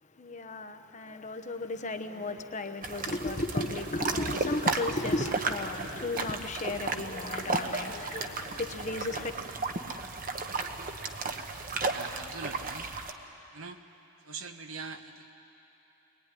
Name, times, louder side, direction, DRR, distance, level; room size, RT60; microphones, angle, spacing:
voice 1, 0.2-9.3, left 2 dB, 30° left, 0.9 m, -34 dB
sound 1, 2.8-13.1, right 3 dB, 40° right, 1.1 m, -34 dB
voice 2, 11.9-12.9 13.5-13.8 14.2-15.3, right 4 dB, 65° right, 1.3 m, -42 dB
23.5 x 21.5 x 9.9 m
head